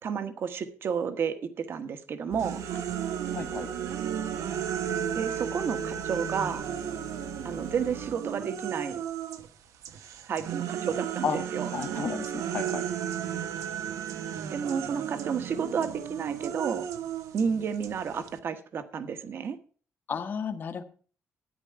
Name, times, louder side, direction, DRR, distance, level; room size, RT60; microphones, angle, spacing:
voice 1, 0.0-2.6 5.1-6.6 7.4-9.0 10.3-11.7 14.5-16.8 17.3-19.6, right 6 dB, 45° right, 11 dB, 1.2 m, -31 dB
Engine, 2.3-8.1, left 3 dB, 55° left, 1.2 m, -46 dB
sound 1, 2.4-9.5 9.8-18.4, right 9 dB, 85° right, 1.1 m, -34 dB
voice 2, 3.3-3.7 11.2-11.4 11.7-12.8 20.1-20.8, left 6 dB, 40° left, 7 dB, 1.2 m, -32 dB
13.0 x 9.8 x 4.6 m, 0.42 s
cardioid pair, 175°, 5 cm